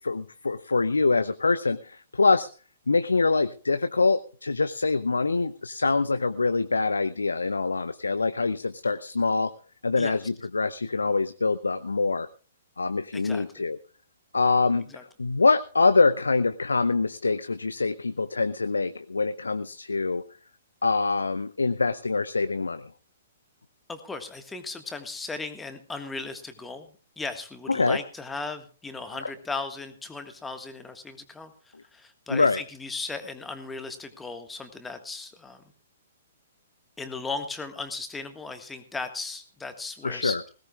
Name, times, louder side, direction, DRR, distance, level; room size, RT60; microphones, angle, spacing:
voice 1, 0.0-2.5 2.9-9.5 9.8-12.3 12.8-13.8 14.3-14.9 15.2-20.2 20.8-22.9 27.7-28.0 32.3-32.6 40.0-40.4, left 3 dB, 75° left, 12 dB, 0.6 m, -24 dB
voice 2, 13.1-13.6 14.9-15.0 23.9-26.9 27.2-35.6 37.0-40.4, left 3 dB, 10° left, 8 dB, 1.6 m, -37 dB
20.0 x 17.5 x 2.4 m, 0.37 s
figure-of-eight pair, 115°, 0 cm